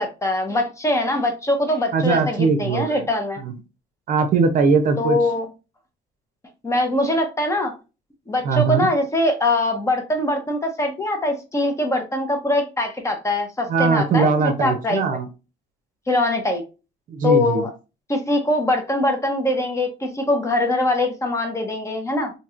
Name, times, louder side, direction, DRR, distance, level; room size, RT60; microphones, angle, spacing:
voice 1, 0.0-3.4 5.0-5.5 6.6-7.7 8.3-14.3 14.6-15.0 16.1-16.6 17.2-17.7 18.1-22.3, left 2 dB, 15° left, 4 dB, 0.7 m, -22 dB
voice 2, 1.9-3.1 3.4-3.5 4.1-5.2 8.4-8.9 13.7-15.3 17.1-17.7, right 5 dB, 55° right, 8 dB, 0.6 m, -20 dB
3.0 x 2.7 x 2.4 m, 0.30 s
cardioid pair, 110°, 17 cm